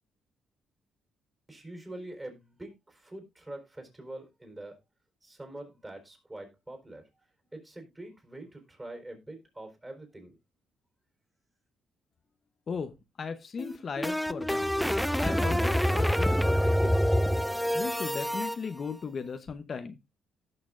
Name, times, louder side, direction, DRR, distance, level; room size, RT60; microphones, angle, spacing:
voice 1, 1.5-4.7 5.2-7.0 7.5-10.4, right 1 dB, 20° right, 4.4 m, -44 dB
voice 2, 12.7-14.7 15.2-17.1 17.7-20.0, left 5 dB, 45° left, 0.8 m, -37 dB
sound 1, 13.6-18.6, equal, ahead, 0.4 m, -26 dB
17.5 x 6.1 x 2.5 m
cardioid pair, 90°, 0 cm